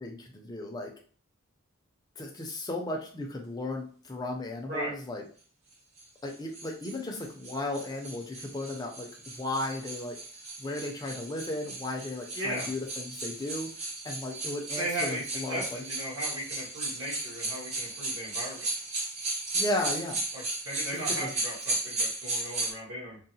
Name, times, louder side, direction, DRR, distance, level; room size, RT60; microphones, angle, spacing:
voice 1, 0.0-0.9 2.2-5.2 6.2-9.1 9.4-10.2 10.6-13.7 14.0-15.8 19.5-20.2 20.9-21.3, left 1 dB, 15° left, 1 dB, 0.4 m, -35 dB
sound 1, 6.0-22.7, right 2 dB, 30° right, 0.6 m, -35 dB
voice 2, 12.3-12.7 14.7-18.7 20.3-23.2, right 1 dB, 70° right, -5 dB, 1.4 m, -37 dB
3.7 x 2.0 x 2.7 m, 0.43 s
head